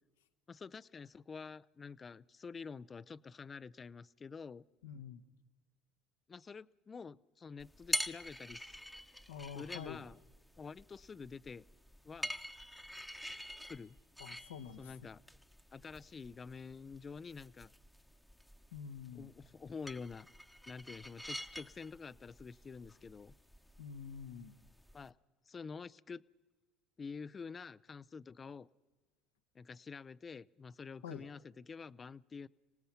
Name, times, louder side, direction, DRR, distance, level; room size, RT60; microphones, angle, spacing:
voice 1, 0.5-4.6 6.3-8.8 9.6-10.2 10.6-11.6 12.0-12.4 13.7-14.0 14.8-15.2 15.7-17.7 19.1-20.3 20.7-23.3 24.9-25.2 25.5-26.2 27.0-28.7 29.5-32.5, left 5 dB, 30° left, 18 dB, 0.5 m, -48 dB
voice 2, 4.8-5.2 9.3-10.0 14.2-14.9 18.7-19.3 23.8-24.6 31.0-31.3, left 7 dB, 85° left, 8 dB, 1.2 m, -47 dB
sound 1, 7.6-25.1, equal, ahead, 1.1 m, -47 dB
24.5 x 19.0 x 5.8 m, 1.2 s
hypercardioid pair, 70°, 0 cm